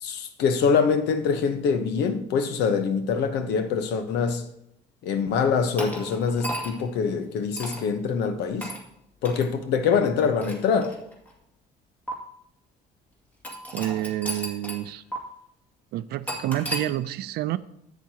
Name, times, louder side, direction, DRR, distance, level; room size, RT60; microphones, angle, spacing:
voice 1, 0.0-4.4 5.0-8.7 9.2-10.9, left 6 dB, 80° left, 1.0 m, -24 dB
sound 1, 5.8-6.9 7.6-7.9 8.6-8.8 9.2-9.5 10.2-11.3 12.1-12.2 13.4-14.9 15.1-15.2 16.3-16.9, equal, 10° left, 2.2 m, -34 dB
voice 2, 13.7-15.0 15.9-17.6, right 14 dB, 70° right, 0.5 m, -28 dB
10.5 x 8.2 x 2.9 m
cardioid pair, 110°, 17 cm